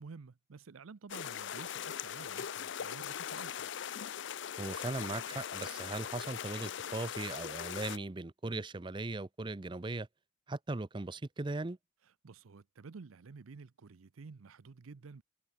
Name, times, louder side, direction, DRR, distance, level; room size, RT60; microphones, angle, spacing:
voice 1, 0.0-3.7 12.0-15.2, right 4 dB, 85° right, 0.6 m, -51 dB
sound 1, 1.1-8.0, left 8 dB, 60° left, 0.5 m, -40 dB
voice 2, 4.6-10.1 10.5-11.8, right 2 dB, 25° right, 0.5 m, -38 dB
head